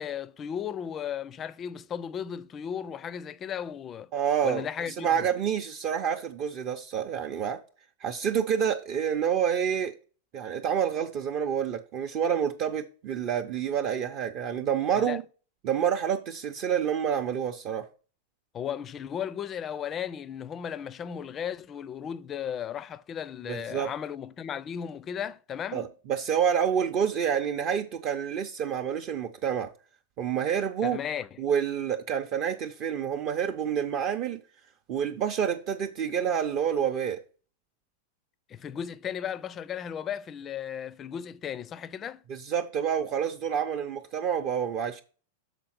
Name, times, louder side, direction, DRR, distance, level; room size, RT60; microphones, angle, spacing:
voice 1, 0.0-4.1 4.4-5.3 14.9-15.2 18.5-25.9 30.8-31.4 38.5-42.2, left 8 dB, 25° left, 0.4 m, -35 dB
voice 2, 4.1-4.6 5.0-7.6 8.0-9.9 10.3-15.2 15.6-17.9 23.5-23.9 25.7-29.7 30.2-31.0 31.4-34.4 34.9-37.2 42.3-45.0, right 8 dB, 40° right, 0.6 m, -28 dB
6.7 x 4.1 x 5.9 m
supercardioid pair, 140°, 0 cm